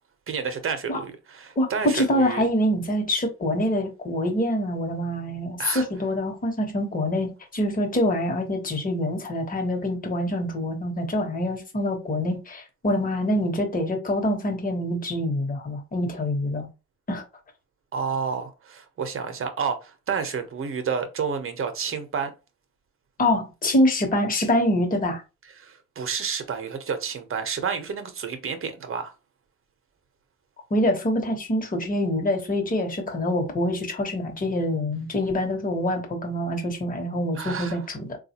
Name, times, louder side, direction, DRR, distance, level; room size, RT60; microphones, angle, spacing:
voice 1, 0.3-2.4 5.6-5.9 17.9-22.3 25.6-29.1 37.3-37.8, right 6 dB, 45° right, 0.9 m, -30 dB
voice 2, 1.6-16.7 17.1-17.2 23.2-25.2 30.7-38.2, left 1 dB, 30° left, 1.1 m, -25 dB
3.7 x 2.4 x 2.9 m
cardioid pair, 90°, 30 cm